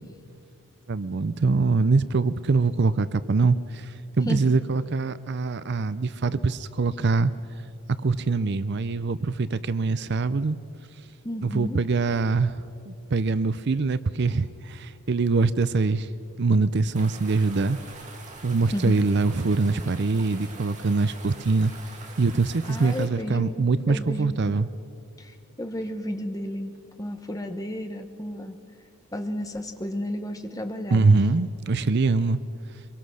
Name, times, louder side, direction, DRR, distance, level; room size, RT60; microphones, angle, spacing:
voice 1, 0.9-7.3 8.0-10.6 11.4-16.1 16.4-17.8 18.4-21.7 22.2-24.7 30.9-32.4, right 3 dB, 50° right, 15 dB, 0.5 m, -23 dB
voice 2, 11.2-11.8 18.7-18.9 22.7-24.6 25.2-26.7 27.0-28.6 29.1-31.2, left 1 dB, 15° left, 6 dB, 1.2 m, -32 dB
sound 1, 16.9-23.1, right 3 dB, 35° right, 2.2 m, -44 dB
24.5 x 22.5 x 6.4 m, 2.5 s
head